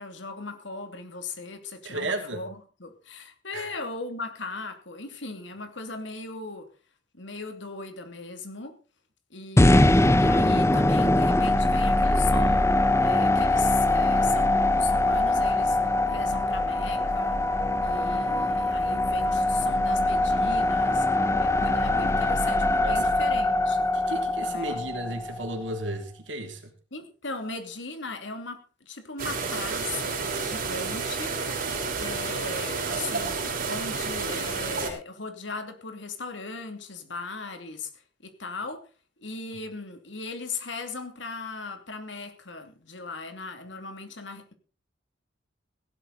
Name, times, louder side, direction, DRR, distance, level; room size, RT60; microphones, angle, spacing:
voice 1, 0.0-6.7 7.1-8.8 9.3-12.7 13.0-15.8 16.1-17.4 17.8-21.1 21.4-23.9 24.4-24.8 26.9-31.4 32.0-37.9 38.2-38.9 39.2-44.5, left 3 dB, 70° left, 2.8 m, -38 dB
voice 2, 1.8-2.4 3.5-3.7 22.8-23.0 23.9-26.6, right 1 dB, 75° right, 3.0 m, -33 dB
sound 1, 9.6-25.7, left 2 dB, 15° left, 0.7 m, -22 dB
sound 2, 29.2-34.9, right 4 dB, 50° right, 4.4 m, -30 dB
16.5 x 12.0 x 4.1 m
head